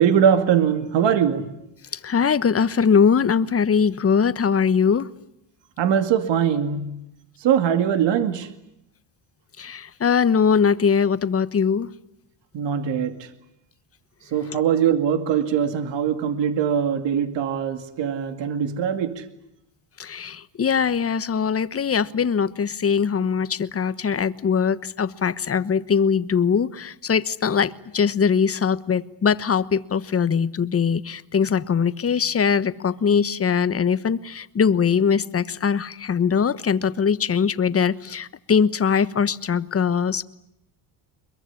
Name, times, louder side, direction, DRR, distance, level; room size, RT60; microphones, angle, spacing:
voice 1, 0.0-1.5 5.8-7.0 7.4-8.5 12.5-13.3 14.3-19.3, right 8 dB, 60° right, 2.4 m, -21 dB
voice 2, 1.9-5.1 9.6-11.9 20.0-40.2, left 6 dB, 30° left, 1.2 m, -21 dB
22.5 x 22.5 x 10.0 m
supercardioid pair, 85°, 48 cm